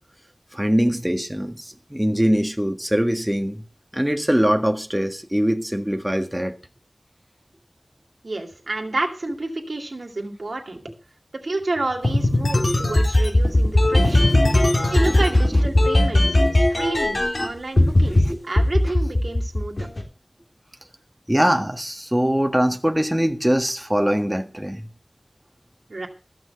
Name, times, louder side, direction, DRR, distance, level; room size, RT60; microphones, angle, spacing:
voice 1, 0.5-3.6 3.9-6.6 13.8-15.2 15.5-15.6 16.2-16.5 16.8-16.9 17.8-18.4 21.3-24.9, equal, 10° right, 1.7 m, -23 dB
voice 2, 8.2-10.8 11.4-14.3 14.9-19.9 25.9-26.1, right 2 dB, 85° right, 2.5 m, -29 dB
sound 1, 12.0-17.4 17.8-18.2 18.6-20.0, left 1 dB, 65° left, 3.9 m, -17 dB
14.5 x 6.2 x 7.9 m
wide cardioid pair, 45°, 0 cm